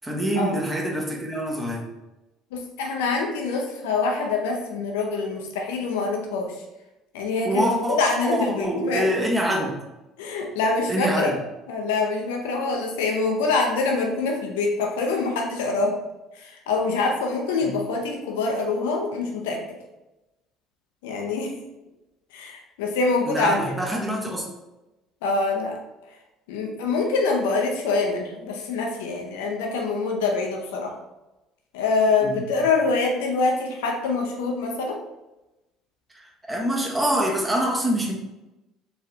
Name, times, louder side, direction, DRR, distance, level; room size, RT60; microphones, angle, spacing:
voice 1, 0.0-1.9 7.4-8.0 8.3-9.8 10.9-11.3 17.6-17.7 23.3-24.5 32.2-32.6 36.1-38.1, right 1 dB, 15° right, -1 dB, 1.1 m, -25 dB
voice 2, 2.5-6.5 7.1-9.1 10.2-11.3 11.7-16.0 16.3-19.6 21.0-21.5 22.3-23.7 25.2-25.8 26.5-30.9 31.7-35.0, left 3 dB, 75° left, 1 dB, 0.6 m, -25 dB
4.1 x 3.2 x 2.7 m, 0.99 s
hypercardioid pair, 60°, 0 cm